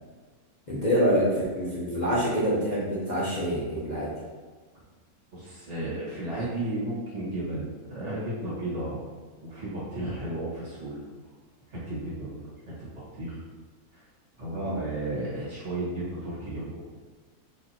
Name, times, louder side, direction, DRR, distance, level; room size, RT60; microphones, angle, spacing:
voice 1, 0.7-4.1 14.5-14.8, equal, 35° left, -8 dB, 1.0 m, -26 dB
voice 2, 5.3-9.1 9.4-11.3 11.7-13.4 13.9-14.0 14.4-16.9, right 1 dB, 50° right, -8 dB, 1.8 m, -34 dB
4.3 x 2.9 x 4.3 m, 1.4 s
omnidirectional pair, 1.5 m